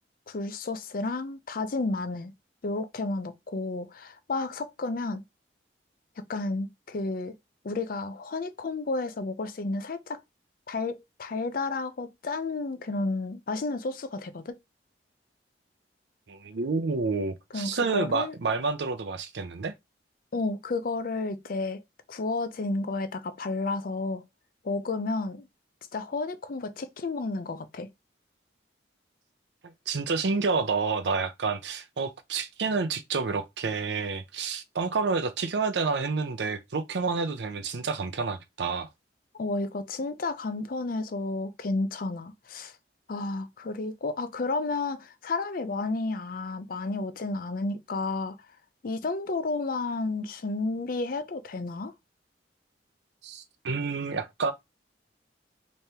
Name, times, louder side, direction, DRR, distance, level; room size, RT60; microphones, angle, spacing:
voice 1, 0.3-2.3 2.6-5.2 6.3-7.3 7.6-10.2 10.7-14.6 17.5-18.3 20.3-21.8 22.1-24.3 24.6-25.5 25.9-27.9 39.3-42.7 43.1-48.4 48.8-51.9, left 3 dB, 50° left, 0.5 m, -31 dB
voice 2, 16.3-19.7 29.9-38.9 53.2-54.5, right 4 dB, 70° right, 0.6 m, -29 dB
3.4 x 3.1 x 2.8 m
head